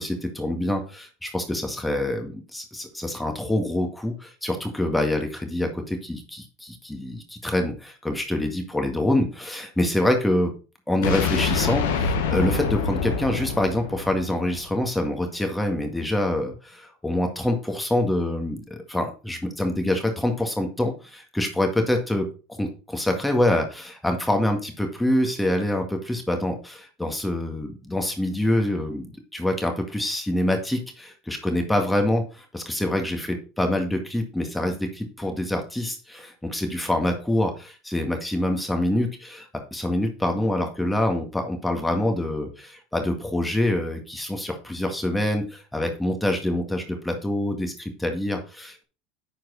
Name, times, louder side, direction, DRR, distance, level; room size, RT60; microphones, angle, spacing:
voice 1, 0.0-10.5 10.9-22.3 22.6-48.8, left 1 dB, 5° left, 4 dB, 1.9 m, -26 dB
sound 1, 11.0-15.0, left 5 dB, 80° left, 1.6 m, -26 dB
9.8 x 4.6 x 4.0 m, 0.34 s
hypercardioid pair, 95°, 0 cm